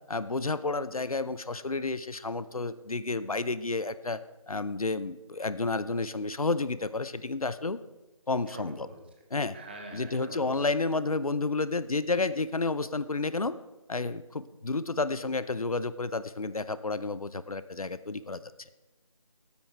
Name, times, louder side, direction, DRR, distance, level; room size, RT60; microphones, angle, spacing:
voice 1, 0.1-4.2 4.5-7.8 8.3-8.9 9.3-9.6 9.9-13.5 13.9-18.4, left 3 dB, 75° left, 14 dB, 0.7 m, -31 dB
voice 2, 8.5-9.0 9.5-10.7, right 2 dB, 15° right, 3 dB, 1.1 m, -44 dB
13.0 x 8.7 x 4.4 m, 1.1 s
figure-of-eight pair, 160°, 18 cm